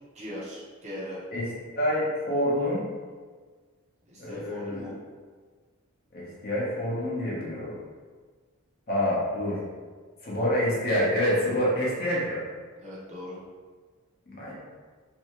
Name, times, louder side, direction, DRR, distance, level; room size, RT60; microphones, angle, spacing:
voice 1, 0.1-1.2 4.1-4.9 12.8-13.4, equal, 30° right, -7 dB, 0.6 m, -39 dB
voice 2, 1.3-2.8 4.2-4.9 6.1-7.8 8.9-9.6 10.2-12.4 14.3-14.5, equal, 45° left, -6 dB, 0.7 m, -27 dB
2.6 x 2.2 x 2.9 m, 1.5 s
head